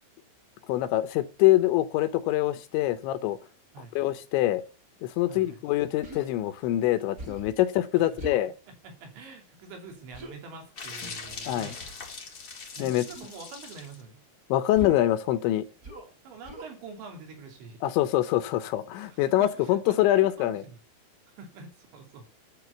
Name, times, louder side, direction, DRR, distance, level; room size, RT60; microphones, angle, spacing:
voice 1, 0.7-3.4 4.0-4.6 5.0-8.5 11.5-11.7 12.8-13.1 14.5-15.7 17.8-20.6, left 14 dB, 80° left, 3.2 m, -24 dB
voice 2, 5.3-5.6 7.9-8.2 8.7-11.8 12.8-14.2 16.3-17.8 19.0-20.8 21.3-22.3, right 4 dB, 70° right, 5.1 m, -46 dB
Human voice, 6.0-6.3 7.2-7.6 8.2-8.5 10.1-10.4 11.6-11.9 13.1-13.4 14.7-15.1 15.8-16.1 16.4-16.7, right 1 dB, 25° right, 2.1 m, -41 dB
sound 1, 10.8-14.0, left 4 dB, 50° left, 1.1 m, -41 dB
11.0 x 7.6 x 8.2 m
omnidirectional pair, 5.4 m